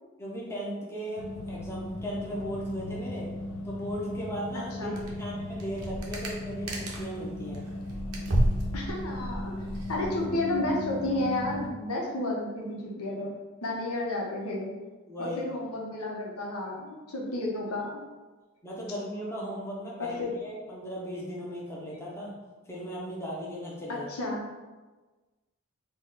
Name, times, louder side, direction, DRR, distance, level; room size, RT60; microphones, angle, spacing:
voice 1, 0.2-3.3 3.6-7.6 15.1-15.4 18.6-22.3 22.7-24.1, equal, 10° left, -5 dB, 0.7 m, -37 dB
sound 1, 1.2-11.7, left 1 dB, 55° left, 0.3 m, -37 dB
voice 2, 4.5-5.0 8.7-9.5 9.9-13.3 13.6-14.7 15.2-18.0 20.0-20.3 23.9-24.4, left 2 dB, 85° left, -2 dB, 0.9 m, -32 dB
sound 2, 5.0-5.2 5.5-7.2 7.5-10.2, right 1 dB, 85° right, 0.7 m, -31 dB
4.0 x 2.3 x 3.7 m, 1.2 s
head